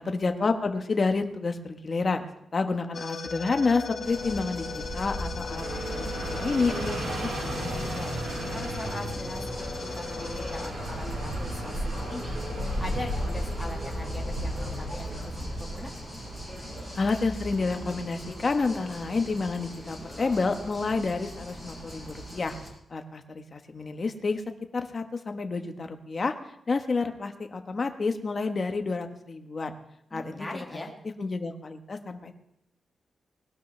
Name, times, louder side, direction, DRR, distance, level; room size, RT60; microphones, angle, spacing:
voice 1, 0.0-2.2 2.5-4.7 4.9-7.2 7.5-8.2 17.0-22.5 22.9-24.4 24.7-26.3 26.7-29.8 30.1-30.5 31.2-32.3, left 4 dB, 35° left, 6 dB, 1.1 m, -29 dB
sound 1, 2.9-13.7, left 5 dB, 55° left, 1.0 m, -39 dB
sound 2, 4.0-22.7, equal, 15° right, 6.4 m, -37 dB
sound 3, 5.5-18.1, right 1 dB, 80° right, 4.0 m, -37 dB
voice 2, 8.5-9.5 9.8-15.9 30.1-30.9, left 2 dB, 5° left, -2 dB, 1.9 m, -40 dB
20.0 x 12.0 x 3.3 m, 0.82 s
wide cardioid pair, 170°, 0 cm